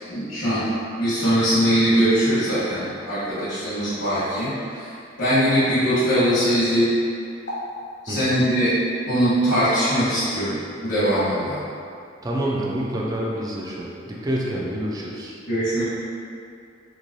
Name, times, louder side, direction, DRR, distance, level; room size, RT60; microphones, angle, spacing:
voice 1, 0.1-0.7 1.0-4.9 5.2-6.9 8.0-8.8 9.1-11.6 15.5-15.8, equal, 65° left, -13 dB, 1.0 m, -21 dB
voice 2, 12.2-15.3, right 1 dB, 20° right, -4 dB, 0.4 m, -27 dB
3.1 x 2.7 x 2.6 m, 2.5 s
head